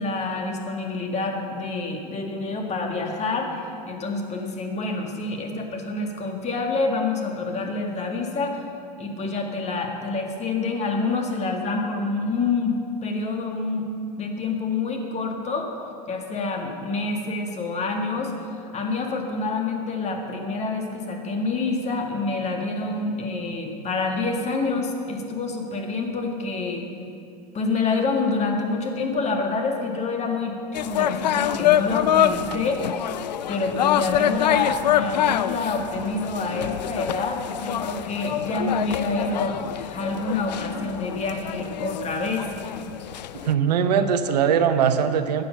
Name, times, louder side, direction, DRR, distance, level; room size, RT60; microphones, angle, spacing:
voice 1, 0.0-8.6 9.0-12.8 13.0-13.9 14.2-15.7 16.1-26.9 27.5-32.8 33.5-42.5, left 3 dB, 30° left, 2 dB, 1.9 m, -27 dB
sound 1, 30.7-43.5, left 11 dB, 85° left, 0.4 m, -25 dB
voice 2, 43.3-45.4, right 7 dB, 75° right, 9 dB, 0.8 m, -21 dB
12.0 x 7.9 x 6.6 m, 2.5 s
hypercardioid pair, 85°, 21 cm